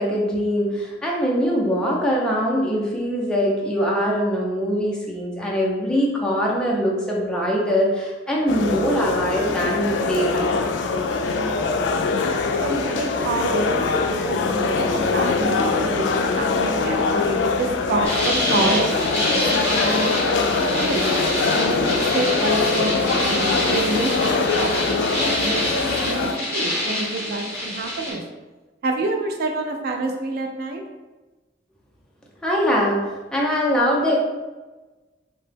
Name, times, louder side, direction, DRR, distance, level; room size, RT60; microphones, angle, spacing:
voice 1, 0.0-10.6 32.4-34.1, equal, 5° left, -4 dB, 0.5 m, -22 dB
sound 1, 8.5-26.3, left 4 dB, 85° left, 0.3 m, -23 dB
voice 2, 12.6-16.0 16.4-21.1 21.5-28.2 28.8-30.8, right 2 dB, 60° right, 3 dB, 0.3 m, -28 dB
sound 2, 18.0-28.1, left 1 dB, 20° right, 1.1 m, -26 dB
2.8 x 2.1 x 3.3 m, 1.2 s
head